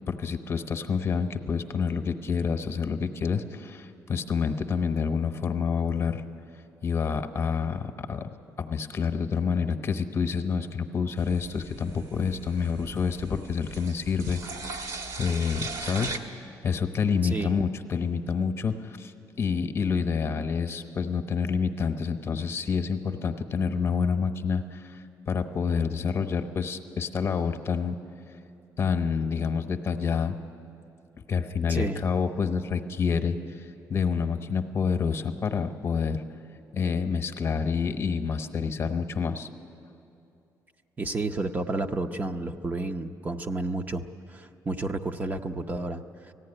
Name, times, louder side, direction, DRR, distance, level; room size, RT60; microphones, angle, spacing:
voice 1, 0.1-6.2 6.8-8.3 8.6-14.7 15.2-28.0 28.8-30.3 31.3-36.2 36.7-39.5, left 6 dB, 40° left, 8 dB, 1.0 m, -28 dB
sound 1, 11.2-16.2, right 3 dB, 60° right, 1.5 m, -39 dB
voice 2, 17.2-17.5 31.7-32.0 41.0-44.0 44.3-46.3, right 2 dB, 25° right, 5 dB, 0.7 m, -31 dB
18.5 x 15.0 x 9.9 m, 2.7 s
cardioid pair, 130°, 7 cm